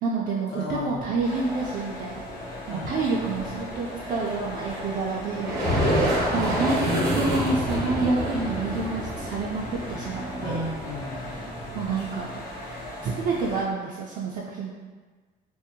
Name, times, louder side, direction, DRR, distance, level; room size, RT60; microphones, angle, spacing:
voice 1, 0.0-5.9 6.3-10.6 11.7-12.3 13.0-14.8, right 3 dB, 55° right, -5 dB, 0.4 m, -28 dB
voice 2, 0.5-1.2 2.7-3.5 6.4-6.6 10.4-11.8, left 1 dB, 85° left, -8 dB, 1.0 m, -36 dB
sound 1, 0.7-13.6, left 1 dB, 30° left, 0.6 m, -44 dB
sound 2, 1.2-13.6, equal, 60° left, 0.8 m, -38 dB
sound 3, 5.3-11.0, equal, 75° right, 0.8 m, -27 dB
2.6 x 2.1 x 2.7 m, 1.4 s
cardioid pair, 110°, 17 cm